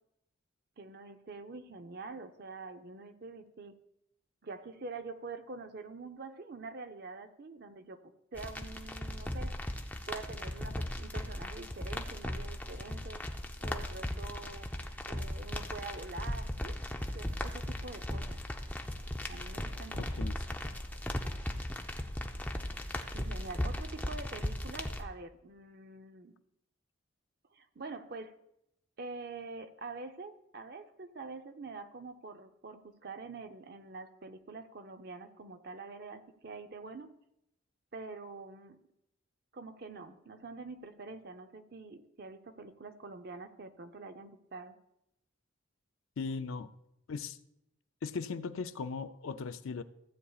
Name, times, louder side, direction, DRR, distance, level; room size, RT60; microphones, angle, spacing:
voice 1, 0.8-3.7 4.4-9.6 10.1-13.2 13.6-14.7 15.1-16.8 17.1-18.4 19.3-20.2 23.1-26.3 27.5-28.3 29.0-37.1 37.9-38.8 39.5-44.8, right 3 dB, 50° right, 8 dB, 0.6 m, -46 dB
sound 1, 8.4-25.0, left 1 dB, 10° left, 0.5 m, -37 dB
voice 2, 20.0-20.6 46.2-46.7 47.1-47.4 48.0-49.8, left 5 dB, 85° left, 10 dB, 0.5 m, -38 dB
15.5 x 8.2 x 2.4 m, 0.81 s
head